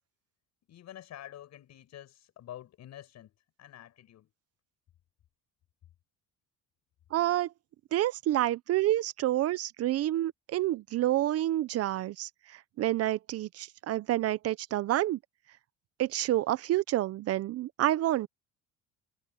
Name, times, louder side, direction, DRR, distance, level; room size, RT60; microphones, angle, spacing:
voice 1, 0.7-4.3, left 12 dB, 60° left, 7.7 m, -48 dB
voice 2, 7.1-7.5 7.9-12.3 12.8-15.2 16.0-18.3, right 14 dB, 50° right, 0.5 m, -28 dB
cardioid pair, 135°, 31 cm